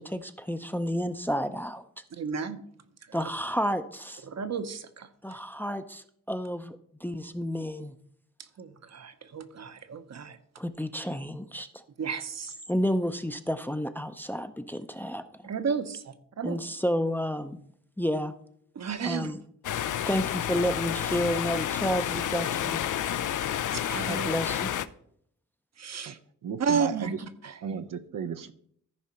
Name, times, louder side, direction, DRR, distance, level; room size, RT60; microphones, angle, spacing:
voice 1, 0.0-1.8 3.1-4.2 5.2-7.9 10.6-11.8 12.7-15.2 16.4-17.6 18.0-18.3 19.0-19.4 20.1-22.8 24.1-24.7, equal, 5° left, 9 dB, 0.5 m, -31 dB
voice 2, 2.1-2.6 3.1-3.2 4.3-5.1 8.6-10.4 12.0-12.5 15.4-16.6 18.7-19.3 23.7-24.3 25.8-26.2 26.6-27.6, right 6 dB, 55° right, 10 dB, 0.9 m, -32 dB
sound 1, 19.6-24.9, left 10 dB, 70° left, 0.5 m, -30 dB
voice 3, 26.4-27.2 27.6-28.5, right 7 dB, 75° right, 9 dB, 0.7 m, -34 dB
14.0 x 5.0 x 4.3 m, 0.67 s
cardioid pair, 90°, 33 cm